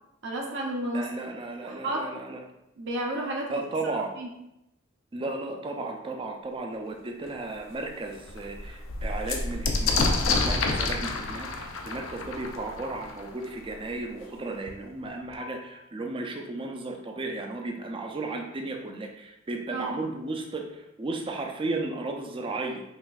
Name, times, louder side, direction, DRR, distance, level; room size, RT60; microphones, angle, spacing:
voice 1, 0.2-1.1 1.6-2.1 2.8-3.5 4.2-4.3 19.7-20.0, right 1 dB, 60° right, -1 dB, 0.7 m, -31 dB
voice 2, 0.9-2.4 3.5-4.1 5.1-22.8, right 2 dB, 25° right, 3 dB, 0.4 m, -34 dB
sound 1, 7.2-7.3 7.8-7.9 8.1-13.7 14.7-14.8 15.0-15.6, left 3 dB, 85° left, 0.5 m, -29 dB
5.8 x 2.5 x 2.3 m, 0.86 s
head